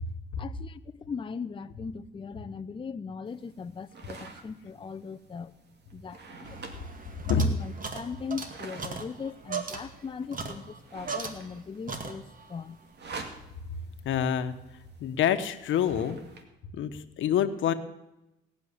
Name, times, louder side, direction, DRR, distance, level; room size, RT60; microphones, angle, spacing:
voice 1, 0.4-5.5 5.9-6.6 7.2-12.8, left 5 dB, 25° left, 9 dB, 0.6 m, -39 dB
sound 1, 3.3-16.4, right 4 dB, 60° right, 2.4 m, -49 dB
sound 2, 6.4-11.6 11.9-12.5, right 5 dB, 45° right, 2.3 m, -38 dB
voice 2, 14.0-14.5 15.0-16.2 16.7-17.7, left 8 dB, 75° left, 10 dB, 1.2 m, -26 dB
18.5 x 6.4 x 9.9 m, 0.93 s
cardioid pair, 90°, 20 cm